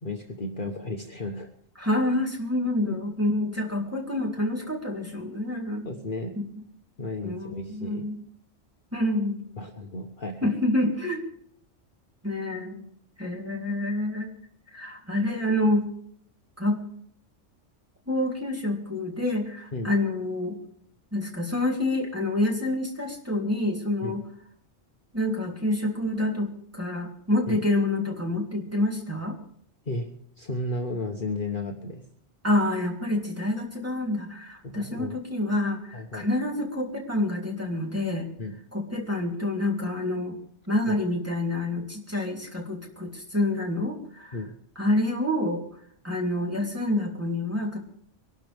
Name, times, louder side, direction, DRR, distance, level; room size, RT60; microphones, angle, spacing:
voice 1, 0.0-1.5 2.9-3.0 5.8-6.3 7.0-8.1 9.6-10.5 19.7-19.9 24.0-24.2 27.5-27.6 29.8-30.1 30.4-32.0 34.6-35.2 35.9-36.3 38.4-38.6 44.3-44.5, left 2 dB, 40° left, 2 dB, 1.3 m, -33 dB
voice 2, 1.8-5.9 6.5-6.6 7.2-8.1 8.9-9.4 10.4-11.2 12.2-12.8 13.2-14.3 14.7-15.9 16.6-16.8 18.1-20.6 21.1-24.2 25.1-29.4 32.4-38.3 38.7-40.4 40.7-44.4 44.7-45.6 46.0-47.8, left 1 dB, 10° right, -1 dB, 3.3 m, -27 dB
24.0 x 12.5 x 3.5 m, 0.66 s
omnidirectional pair, 1.3 m